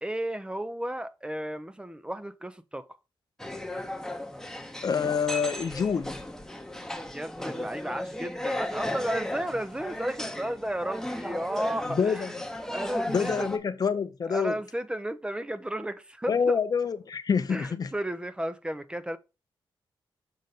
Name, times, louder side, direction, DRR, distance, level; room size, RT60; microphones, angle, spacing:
voice 1, 0.0-2.9 7.0-12.3 12.7-13.5 14.2-16.6 17.5-19.2, right 1 dB, 10° right, 0.6 m, -33 dB
sound 1, 3.4-13.6, left 1 dB, 5° left, 0.9 m, -35 dB
voice 2, 4.8-6.2 11.9-12.3 13.1-14.6 16.3-17.9, left 6 dB, 45° left, 0.6 m, -27 dB
6.5 x 4.0 x 4.0 m
cardioid pair, 100°, 9 cm